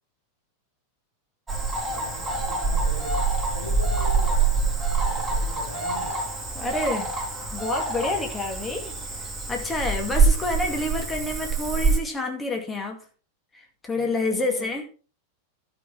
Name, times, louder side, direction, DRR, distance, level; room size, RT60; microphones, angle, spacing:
Cricket / Frog, 1.5-12.0, right 4 dB, 10° right, 2.7 m, -25 dB
voice 1, 1.8-6.3 13.9-14.6, equal, 85° left, 0 dB, 3.4 m, -41 dB
voice 2, 6.5-7.1 7.5-8.9 9.5-13.0 13.5-14.9, left 2 dB, 15° left, 2 dB, 2.3 m, -28 dB
12.5 x 6.3 x 4.6 m, 0.36 s
figure-of-eight pair, 90°, 0 cm